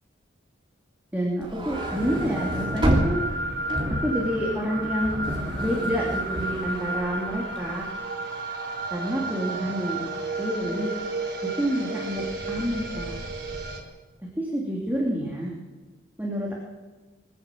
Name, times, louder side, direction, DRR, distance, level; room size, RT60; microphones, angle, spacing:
voice 1, 1.1-3.2 4.0-5.3 5.6-7.8 8.9-10.1 10.4-10.9 11.6-12.2 12.5-13.1 14.4-15.5 16.2-16.6, equal, 10° right, -4 dB, 3.1 m, -28 dB
sound 1, 1.4-7.7, equal, 25° right, 3.2 m, -29 dB
sound 2, 1.7-13.8, right 2 dB, 65° right, 4.5 m, -33 dB
22.0 x 15.0 x 7.7 m, 1.3 s
head